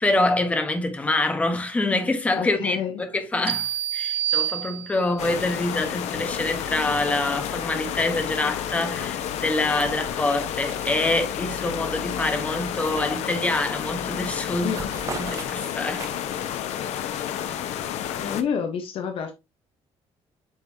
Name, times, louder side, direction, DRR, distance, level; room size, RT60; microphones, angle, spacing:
voice 1, 0.0-14.8 15.2-16.1, left 2 dB, 10° left, 1.1 m, -26 dB
voice 2, 2.3-3.0 14.6-14.9 18.1-19.3, left 7 dB, 55° left, 1.0 m, -29 dB
sound 1, 3.5-5.3, right 12 dB, 60° right, 0.4 m, -27 dB
sound 2, 5.2-18.4, left 10 dB, 90° left, 1.0 m, -30 dB
sound 3, 8.2-8.6 8.8-11.3 11.7-13.6 14.0-14.2 14.5-16.4, right 4 dB, 30° right, 1.1 m, -41 dB
8.4 x 5.2 x 2.8 m
cardioid pair, 175°, 11 cm